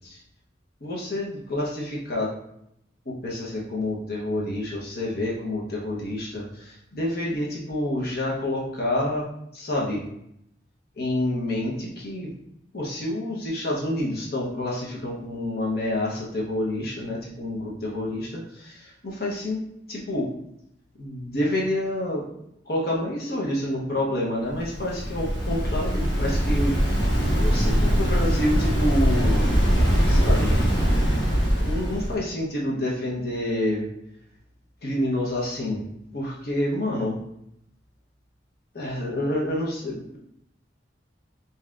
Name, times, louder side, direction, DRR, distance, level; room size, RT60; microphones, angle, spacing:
voice 1, 0.8-2.3 3.1-9.3 9.5-10.1 11.0-12.3 12.7-19.6 19.9-20.3 21.0-22.3 22.7-29.5 30.1-30.6 31.6-33.9 34.8-35.8 36.1-37.2 38.7-40.2, left 1 dB, 55° left, -4 dB, 0.9 m, -28 dB
Waves surf, 24.5-32.1, equal, 90° left, 1.4 m, -22 dB
5.4 x 2.8 x 2.4 m, 0.77 s
head